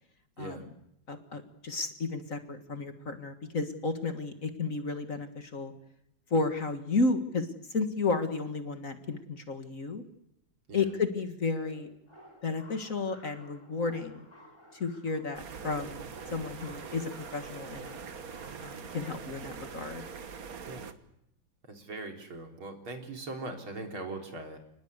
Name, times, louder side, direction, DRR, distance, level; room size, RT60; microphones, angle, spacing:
voice 1, 0.4-0.7 1.1-5.7 6.3-10.0 10.7-11.9 12.4-14.3 14.7-18.0 18.6-20.0, left 3 dB, 40° left, 8 dB, 2.1 m, -32 dB
sound 1, 11.6-18.6, equal, 10° left, 6.0 m, -55 dB
sound 2, 15.3-20.9, right 6 dB, 50° right, 1.6 m, -43 dB
voice 2, 21.7-24.6, right 2 dB, 80° right, 4 dB, 4.4 m, -40 dB
29.0 x 20.0 x 8.2 m, 0.79 s
omnidirectional pair, 2.3 m